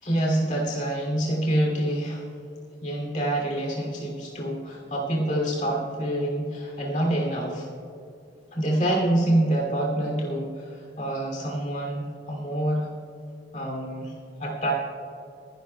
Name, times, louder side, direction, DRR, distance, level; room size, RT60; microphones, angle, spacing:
voice 1, 0.0-2.3 2.8-7.7 8.5-12.9 13.5-14.1 14.4-14.7, right 1 dB, 40° left, -1 dB, 2.8 m, -26 dB
27.0 x 11.5 x 2.3 m, 2.5 s
head